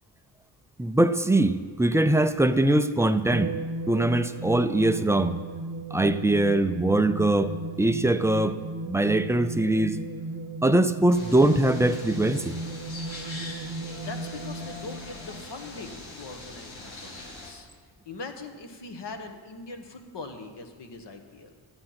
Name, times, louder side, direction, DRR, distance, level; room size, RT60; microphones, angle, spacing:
voice 1, 0.8-3.5 3.9-5.3 5.9-8.6 8.9-10.0 10.6-12.6, right 1 dB, 5° right, 10 dB, 0.3 m, -22 dB
sound 1, 3.3-16.1, right 2 dB, 35° right, 0.9 m, -36 dB
sound 2, 11.1-17.5, left 2 dB, 80° left, 2.0 m, -42 dB
voice 2, 14.0-17.7 18.0-21.6, left 3 dB, 60° left, 6 dB, 1.3 m, -41 dB
12.5 x 8.8 x 5.8 m, 1.5 s
cardioid pair, 115°, 46 cm